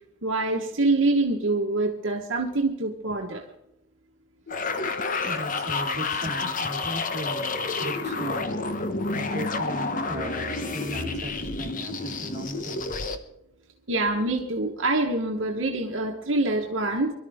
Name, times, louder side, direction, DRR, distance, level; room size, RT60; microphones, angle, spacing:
voice 1, 0.2-3.5 13.9-17.1, right 2 dB, 70° right, 1 dB, 1.3 m, -25 dB
sound 1, 4.5-8.4, left 4 dB, 65° left, 1.1 m, -41 dB
sound 2, 4.5-13.2, left 3 dB, 45° left, 1.1 m, -29 dB
voice 2, 5.2-8.8 9.1-13.0, right 1 dB, 40° right, 3 dB, 2.8 m, -37 dB
23.0 x 12.5 x 3.6 m, 0.84 s
head